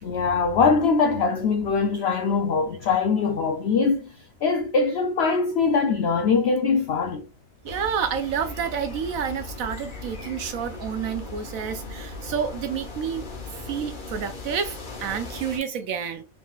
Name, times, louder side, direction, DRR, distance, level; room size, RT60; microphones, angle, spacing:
voice 1, 0.0-4.1 4.4-7.3, left 4 dB, 60° left, 0.7 m, -22 dB
sound 1, 7.6-15.6, left 3 dB, 40° left, 1.0 m, -38 dB
voice 2, 7.6-13.3 13.7-16.2, right 7 dB, 75° right, 1.0 m, -29 dB
4.0 x 3.7 x 2.4 m
omnidirectional pair, 1.5 m